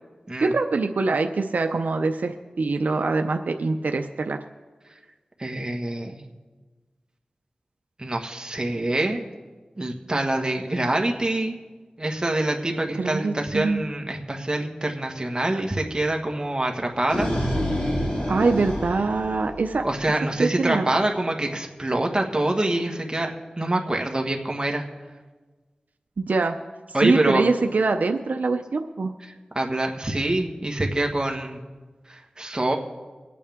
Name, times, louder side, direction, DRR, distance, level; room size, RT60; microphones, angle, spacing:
voice 1, 0.4-4.4 12.9-13.8 18.3-19.8 20.4-20.9 26.2-26.6 27.0-29.1, right 3 dB, 85° right, 6 dB, 0.6 m, -24 dB
voice 2, 5.4-6.2 8.0-9.2 9.8-11.5 12.0-17.3 19.8-24.8 26.9-27.5 29.5-31.6 32.1-32.8, right 1 dB, 30° right, 2 dB, 1.6 m, -25 dB
sound 1, 16.8-20.0, equal, 45° left, 3.3 m, -27 dB
22.5 x 8.4 x 3.6 m, 1.3 s
wide cardioid pair, 60°, 3 cm